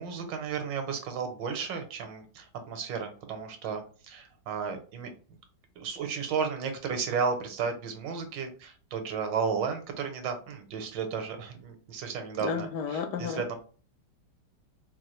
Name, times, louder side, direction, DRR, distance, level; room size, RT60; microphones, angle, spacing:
voice 1, 0.0-5.1 5.8-13.6, right 6 dB, 90° right, 6 dB, 1.5 m, -33 dB
voice 2, 12.4-13.6, left 6 dB, 75° left, 6 dB, 1.2 m, -32 dB
4.3 x 2.4 x 3.0 m, 0.39 s
omnidirectional pair, 1.9 m